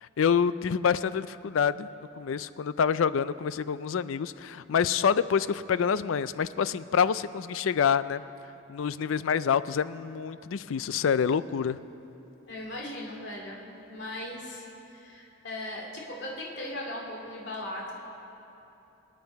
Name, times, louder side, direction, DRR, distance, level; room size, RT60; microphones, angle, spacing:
voice 1, 0.0-1.9 2.2-8.2 8.7-11.8, left 7 dB, 80° left, 16 dB, 0.4 m, -27 dB
voice 2, 12.5-13.6 13.9-17.9, left 1 dB, 55° left, -2 dB, 2.3 m, -38 dB
24.0 x 9.2 x 4.7 m, 2.9 s
head